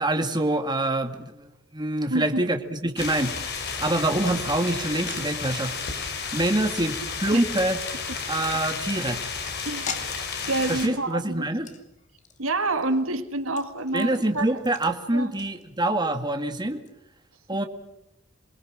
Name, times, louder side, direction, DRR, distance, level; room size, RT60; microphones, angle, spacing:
voice 1, 0.0-3.3 3.8-5.7 6.3-7.8 8.3-9.2 10.7-11.7 13.9-16.8 17.5-17.7, right 1 dB, 20° right, 6 dB, 2.0 m, -25 dB
voice 2, 2.1-2.4 7.3-7.4 9.7-9.9 10.5-11.5 12.4-14.5 15.1-15.3, right 2 dB, 85° right, 9 dB, 2.0 m, -27 dB
sound 1, 3.0-10.9, left 5 dB, 55° left, 4.5 m, -32 dB
sound 2, 5.1-16.1 16.3-16.4 16.7-16.9, left 5 dB, 35° left, 2.5 m, -44 dB
28.0 x 21.5 x 7.5 m, 0.87 s
head